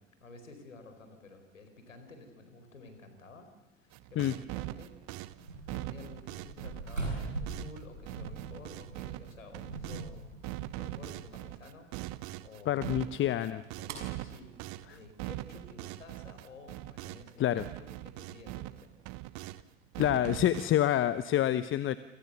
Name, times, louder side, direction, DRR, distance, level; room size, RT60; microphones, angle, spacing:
voice 1, 0.2-5.0 5.7-10.4 10.8-13.1 13.8-14.5 14.9-18.9, left 3 dB, 80° left, 8 dB, 4.8 m, -52 dB
sound 1, 3.9-10.1 10.4-17.3 17.6-19.6 19.9-20.7, right 18 dB, 45° right, 1.2 m, -42 dB
sound 2, 5.4-11.4, right 3 dB, 85° right, 7.7 m, -41 dB
sound 3, 10.8-16.2, right 6 dB, 65° right, 6.2 m, -53 dB
voice 2, 12.7-13.6 14.9-15.0 17.4-17.6 20.0-22.0, left 12 dB, 30° left, 15 dB, 0.9 m, -27 dB
28.5 x 27.0 x 6.9 m, 1.1 s
figure-of-eight pair, 75°, 38 cm